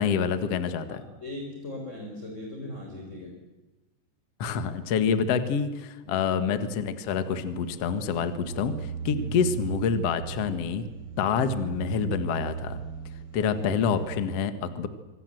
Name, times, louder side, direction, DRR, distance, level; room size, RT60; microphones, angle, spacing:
voice 1, 0.0-1.0 4.4-10.8 11.2-12.8 13.3-14.9, left 6 dB, 60° left, 10 dB, 1.6 m, -27 dB
voice 2, 0.9-3.4 6.0-6.3 9.1-9.3 13.3-13.6, left 1 dB, 15° left, 1 dB, 4.1 m, -39 dB
sound 1, 7.4-14.3, right 6 dB, 65° right, 1.0 m, -37 dB
26.0 x 25.0 x 7.8 m, 1.1 s
omnidirectional pair, 5.3 m